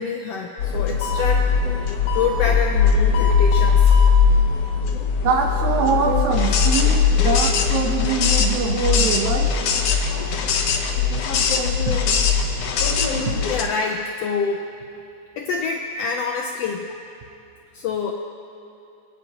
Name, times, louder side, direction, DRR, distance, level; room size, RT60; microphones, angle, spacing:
voice 1, 0.0-1.5 2.1-4.0 13.5-14.7 15.4-16.9 17.7-18.1, left 5 dB, 80° left, 2 dB, 1.4 m, -26 dB
sound 1, 0.6-13.6, left 6 dB, 65° left, 1.7 m, -19 dB
voice 2, 5.2-9.5 13.3-13.4, right 5 dB, 75° right, 3 dB, 2.3 m, -23 dB
24.5 x 9.4 x 2.9 m, 2.7 s
omnidirectional pair, 3.5 m